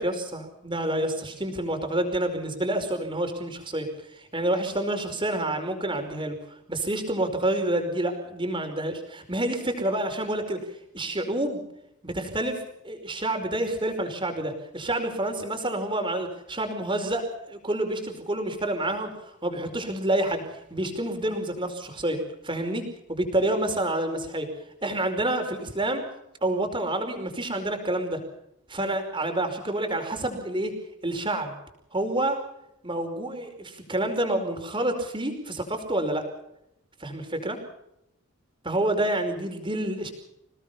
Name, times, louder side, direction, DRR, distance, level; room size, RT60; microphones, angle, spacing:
voice 1, 0.0-6.4 6.7-10.6 10.9-11.6 12.0-12.6 12.8-20.4 20.7-24.5 24.8-26.0 26.4-28.2 28.7-30.7 31.0-31.6 31.9-32.4 32.8-36.2 37.0-37.6 38.6-40.1, right 1 dB, 25° right, 5 dB, 5.1 m, -28 dB
28.5 x 18.5 x 5.8 m, 0.81 s
head